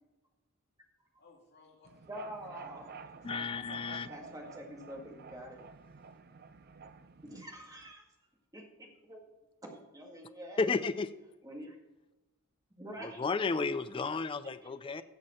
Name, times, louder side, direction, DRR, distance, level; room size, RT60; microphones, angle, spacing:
voice 1, 1.2-2.1 2.5-3.7, left 3 dB, 50° left, -1 dB, 2.7 m, -62 dB
sound 1, 1.8-7.9, right 4 dB, 45° right, 0.6 m, -50 dB
voice 2, 2.1-2.9 3.9-5.6 7.2-8.0 8.5-9.2 9.6-10.8 11.4-11.8 12.8-13.2 13.6-13.7 13.9-14.0 14.4-14.8, equal, 15° right, 1 dB, 1.9 m, -46 dB
voice 3, 3.2-4.1 10.6-11.1 13.0-15.0, left 4 dB, 25° left, 12 dB, 0.3 m, -33 dB
14.0 x 7.4 x 4.3 m, 1.1 s
head